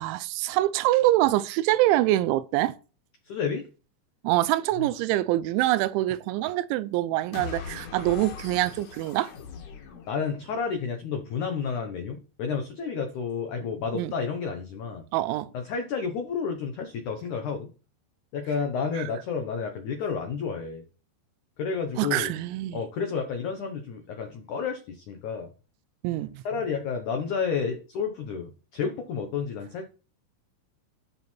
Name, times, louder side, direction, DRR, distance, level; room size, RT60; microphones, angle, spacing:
voice 1, 0.0-2.8 4.2-9.3 13.9-14.1 15.1-15.5 19.0-19.1 22.0-22.8 26.0-26.4, right 16 dB, 90° right, 3.0 m, -25 dB
voice 2, 3.3-3.6 10.1-15.0 15.5-17.7 18.3-20.8 21.6-22.3 22.7-25.5 26.4-29.9, left 5 dB, 85° left, 1.7 m, -31 dB
sound 1, 7.3-10.7, left 6 dB, 55° left, 2.4 m, -40 dB
13.5 x 4.5 x 4.5 m
omnidirectional pair, 5.3 m